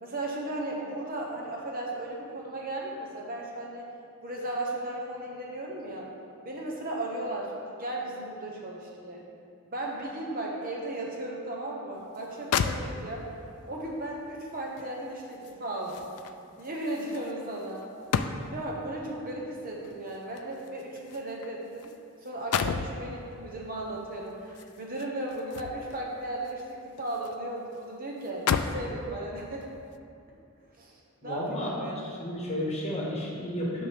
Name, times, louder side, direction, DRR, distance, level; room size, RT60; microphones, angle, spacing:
voice 1, 0.0-3.9 4.2-6.1 6.4-7.5 7.8-9.2 9.7-13.3 13.7-16.1 16.6-17.8 18.5-21.9 22.2-29.6 30.8-30.9 31.2-32.1, right 1 dB, 40° right, -2 dB, 0.9 m, -36 dB
sound 1, 12.1-12.2 12.5-13.4 14.8-18.7 19.8-22.0 22.2-23.0 24.5-26.0 26.5-27.4 27.7-27.8 28.2-28.9 29.6-29.8, left 6 dB, 85° left, 0.4 m, -33 dB
voice 2, 31.2-33.9, left 1 dB, 30° left, -4 dB, 1.4 m, -32 dB
9.2 x 6.2 x 3.5 m, 2.4 s
head